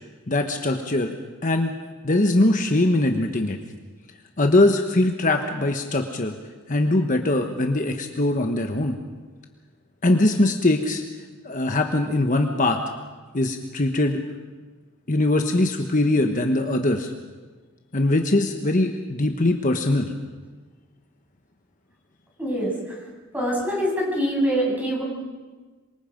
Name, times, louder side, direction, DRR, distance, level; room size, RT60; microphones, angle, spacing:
voice 1, 0.3-1.2 1.4-1.7 2.0-3.6 4.4-6.3 6.7-9.0 10.0-11.0 11.4-12.8 13.3-14.2 15.1-17.1 17.9-20.1, left 2 dB, 40° left, 4 dB, 1.2 m, -21 dB
voice 2, 22.4-23.0 23.3-25.0, equal, 10° right, -3 dB, 7.5 m, -24 dB
26.5 x 24.0 x 5.2 m, 1.4 s
head